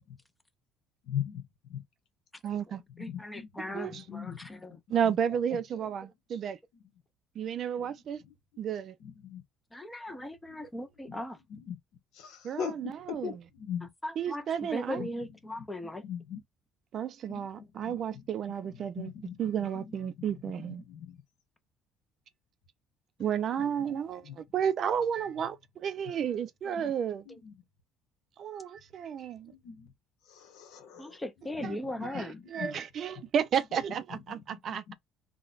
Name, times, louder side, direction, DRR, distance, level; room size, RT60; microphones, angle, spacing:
voice 1, 1.1-1.4 1.7-1.8 3.0-4.5 4.9-5.1 5.5-5.6 7.9-8.3 9.0-9.4 10.1-10.2 10.6-10.7 11.1-11.2 11.5-11.8 12.1-13.9 15.0-15.2 15.8-16.4 17.3-18.3 18.6-20.0 20.6-21.2 23.6-24.4 26.6-26.9 27.3-27.5 29.5-29.9 30.3-31.2 31.6-31.7 32.0-32.7 33.2-33.3 33.9-34.9, left 8 dB, 70° left, 1.0 m, -41 dB
voice 2, 2.4-2.8 3.7-4.0 4.9-6.6 7.4-8.2 8.6-8.9 12.4-13.4 14.2-15.0 16.9-19.1 19.4-20.8 23.2-27.2 28.4-29.5 31.6-31.8 32.1-34.8, right 8 dB, 45° right, 0.4 m, -32 dB
voice 3, 3.0-4.8 9.7-11.4 14.0-16.0 17.5-17.6 27.3-27.4 31.0-32.4, left 1 dB, 10° left, 0.5 m, -38 dB
3.8 x 2.2 x 2.4 m
cardioid pair, 135°, 0 cm